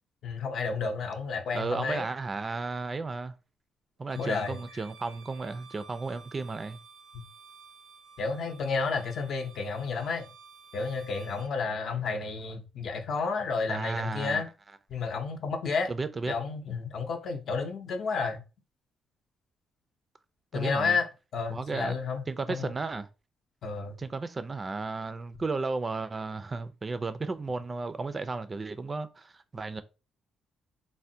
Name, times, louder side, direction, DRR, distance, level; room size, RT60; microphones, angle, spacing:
voice 1, 0.2-2.1 4.2-4.6 7.1-7.2 8.2-10.3 10.7-14.5 14.9-15.9 16.3-18.4 20.5-21.1 21.3-22.7 23.6-24.0, left 4 dB, 60° left, 0.6 m, -31 dB
voice 2, 1.5-3.3 4.0-6.8 13.7-14.4 15.9-16.3 20.5-21.0 21.5-22.0 22.3-23.1 24.0-29.8, right 3 dB, 30° right, 0.3 m, -34 dB
Bowed string instrument, 4.0-11.5, right 5 dB, 85° right, 0.7 m, -53 dB
3.3 x 2.1 x 2.6 m
cardioid pair, 90°, 0 cm